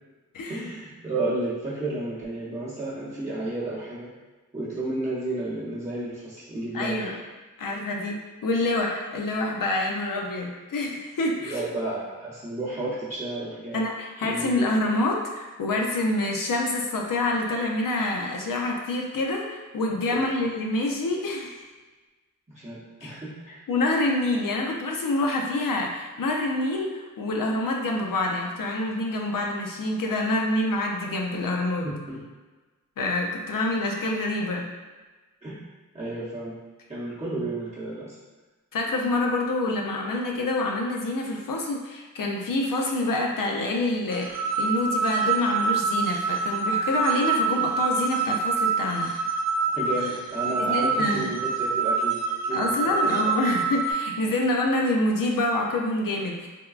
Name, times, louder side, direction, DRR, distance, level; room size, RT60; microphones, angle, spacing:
voice 1, 0.5-4.1 4.5-7.2 11.4-13.8 14.2-14.7 19.9-20.2 22.5-23.6 31.8-32.2 35.4-35.6 35.9-36.6 36.9-38.2 49.7-52.2 52.4-53.5, right 2 dB, 20° right, -12 dB, 0.8 m, -32 dB
voice 2, 6.7-7.1 7.6-11.6 13.7-21.6 23.0-23.1 23.7-31.9 33.0-34.6 38.7-49.1 50.6-51.3 52.5-56.5, left 2 dB, 75° left, 0 dB, 0.5 m, -27 dB
sound 1, 44.1-53.9, right 5 dB, 50° right, 0.5 m, -26 dB
3.5 x 2.2 x 2.4 m, 1.2 s
wide cardioid pair, 60°, 34 cm